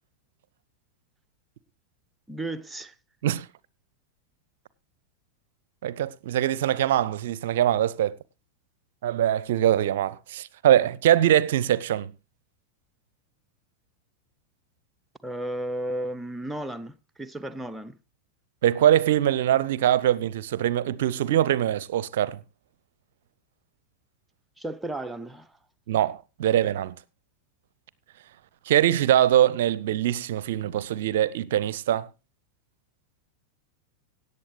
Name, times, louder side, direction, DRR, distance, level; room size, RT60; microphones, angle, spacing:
voice 1, 2.3-2.9 15.2-18.0 24.6-25.5, right 1 dB, 5° right, 0.7 m, -34 dB
voice 2, 5.8-8.1 9.0-12.1 18.6-22.4 25.9-27.0 28.7-32.1, right 11 dB, 55° right, 0.6 m, -23 dB
17.5 x 8.5 x 3.2 m
figure-of-eight pair, 90°, 0 cm